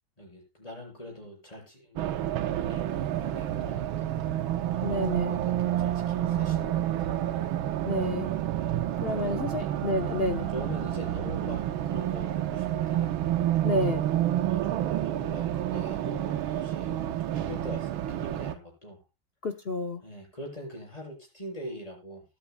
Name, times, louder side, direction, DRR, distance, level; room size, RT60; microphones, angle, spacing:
voice 1, 0.2-2.3 2.6-4.2 4.7-7.4 8.5-8.8 9.1-9.7 10.5-13.2 14.4-16.9 17.2-19.0 20.0-22.2, left 1 dB, 15° left, -1 dB, 6.8 m, -43 dB
Race car auto racing, 2.0-18.5, right 12 dB, 80° right, 1.6 m, -29 dB
voice 2, 4.8-5.4 7.8-8.3 9.0-10.5 13.6-14.0 19.4-20.0, left 2 dB, 50° left, 6 dB, 0.7 m, -29 dB
20.0 x 9.8 x 2.2 m, 0.28 s
omnidirectional pair, 2.2 m